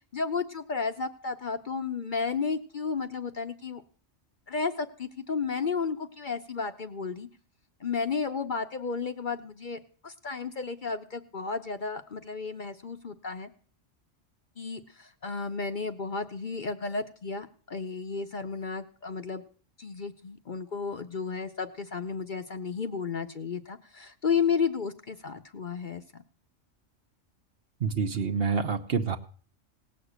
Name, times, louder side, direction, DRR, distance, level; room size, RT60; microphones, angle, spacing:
voice 1, 0.1-3.8 4.5-7.3 7.8-13.5 14.6-19.4 19.8-26.0, left 5 dB, 45° left, 8 dB, 0.8 m, -33 dB
voice 2, 27.8-29.2, right 5 dB, 50° right, 7 dB, 1.1 m, -27 dB
18.0 x 6.6 x 8.0 m, 0.44 s
omnidirectional pair, 1.3 m